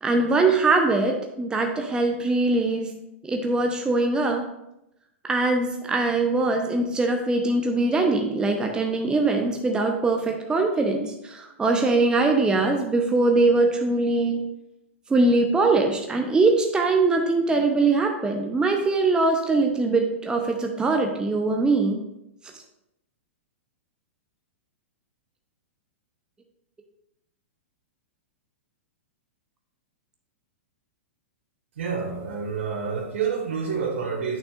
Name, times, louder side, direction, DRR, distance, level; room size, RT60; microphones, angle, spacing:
voice 1, 0.0-2.9 3.2-4.4 5.2-14.4 15.1-22.0, right 3 dB, 10° right, 3 dB, 0.7 m, -22 dB
voice 2, 31.8-34.4, right 6 dB, 65° right, 2 dB, 1.7 m, -28 dB
9.1 x 6.0 x 2.5 m, 0.85 s
hypercardioid pair, 110°, 7 cm